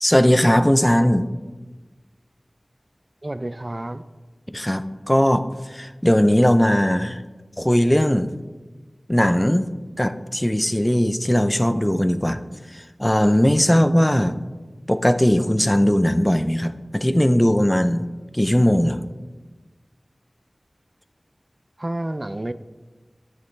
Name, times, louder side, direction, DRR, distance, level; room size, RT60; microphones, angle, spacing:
voice 1, 0.0-1.3 4.5-7.2 7.6-8.3 9.1-9.7 10.0-12.4 12.7-14.4 14.9-18.0 18.3-19.0, equal, 15° left, 11 dB, 0.5 m, -19 dB
voice 2, 3.2-4.0 21.8-22.5, right 1 dB, 35° right, 13 dB, 0.4 m, -29 dB
12.5 x 6.7 x 3.3 m, 1.2 s
wide cardioid pair, 55°, 0 cm